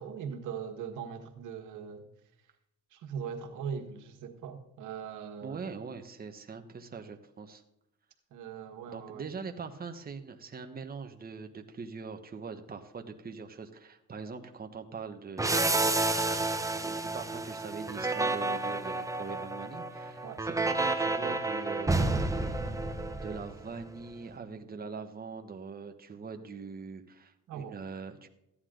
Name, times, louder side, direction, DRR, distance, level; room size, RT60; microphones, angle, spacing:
voice 1, 0.0-2.1 2.9-5.7 8.3-9.2 20.2-20.4 27.5-27.8, right 7 dB, 85° right, 4 dB, 1.6 m, -40 dB
voice 2, 5.4-7.6 8.9-16.2 16.8-22.5 23.2-28.3, right 5 dB, 30° right, 5 dB, 1.2 m, -42 dB
sound 1, 15.4-23.8, right 2 dB, 10° right, 1.0 m, -30 dB
14.5 x 9.9 x 3.9 m, 0.83 s
cardioid pair, 90°, 30 cm